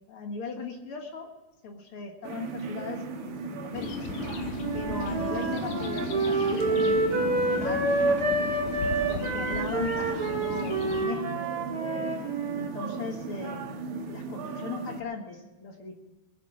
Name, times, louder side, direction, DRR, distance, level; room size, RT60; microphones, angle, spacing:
voice 1, 0.1-1.3 1.6-4.1 4.7-7.9 8.4-8.6 9.1-11.5 12.6-13.7 14.1-16.0, left 4 dB, 50° left, 3 dB, 1.8 m, -39 dB
sound 1, 2.2-15.0, right 4 dB, 80° right, 3.2 m, -37 dB
civenna morning, 3.7-11.1, left 6 dB, 65° left, 2.1 m, -36 dB
Wind instrument woodwind instrument, 4.6-12.7, right 3 dB, 45° right, 1.4 m, -28 dB
21.5 x 8.5 x 5.8 m, 1.1 s
omnidirectional pair, 4.1 m